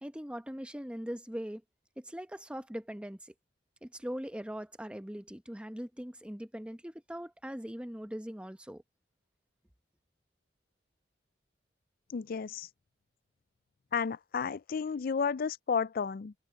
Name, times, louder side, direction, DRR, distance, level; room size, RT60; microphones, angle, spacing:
voice 1, 0.0-1.6 2.0-3.3 3.8-8.8, equal, 5° right, 1.0 m, -41 dB
voice 2, 12.1-12.7 13.9-16.3, left 6 dB, 55° left, 0.4 m, -32 dB
head